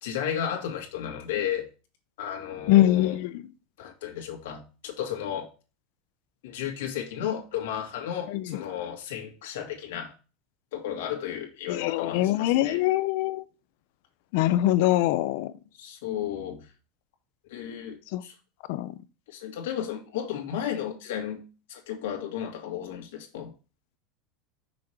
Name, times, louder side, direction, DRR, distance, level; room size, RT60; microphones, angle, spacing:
voice 1, 0.0-1.7 2.2-3.2 3.8-5.5 6.4-10.1 10.7-12.8 15.8-16.7 17.5-18.3 19.3-21.4 21.7-23.5, left 9 dB, 85° left, 1.9 m, -33 dB
voice 2, 2.7-3.4 8.3-8.6 11.7-13.4 14.3-15.5 18.1-18.2 18.7-18.9, left 14 dB, 50° left, 0.5 m, -23 dB
6.1 x 4.4 x 4.9 m
supercardioid pair, 180°, 0 cm